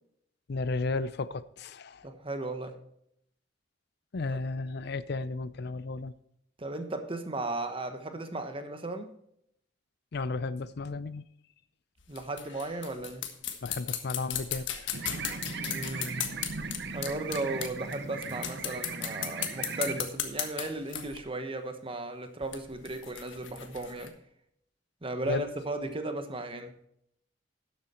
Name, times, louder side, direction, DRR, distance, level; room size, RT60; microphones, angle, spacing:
voice 1, 0.5-2.1 4.1-6.1 10.1-11.2 13.6-14.9 25.3-25.4, left 3 dB, 55° left, 0.5 m, -34 dB
voice 2, 2.0-2.8 4.3-4.4 6.6-9.1 12.1-13.3 15.6-16.3 16.9-24.2 25.0-26.8, right 2 dB, 30° right, 1.2 m, -36 dB
sound 1, 12.0-17.9 18.2-21.2 22.4-24.1, left 9 dB, 75° left, 1.5 m, -36 dB
sound 2, 14.9-20.0, right 4 dB, 60° right, 1.0 m, -38 dB
12.0 x 8.0 x 4.3 m
head